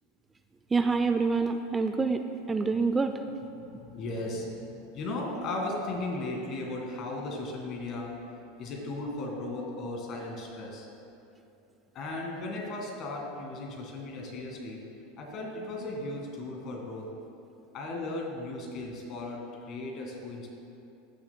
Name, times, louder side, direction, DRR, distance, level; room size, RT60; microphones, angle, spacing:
voice 1, 0.7-2.2 2.5-3.1, right 4 dB, 20° right, 7 dB, 0.4 m, -26 dB
voice 2, 3.4-8.1 8.6-10.9 11.9-14.8 15.2-17.1 17.7-20.5, left 2 dB, 45° left, 0 dB, 1.8 m, -36 dB
15.5 x 6.2 x 2.2 m, 2.7 s
hypercardioid pair, 95°, 0 cm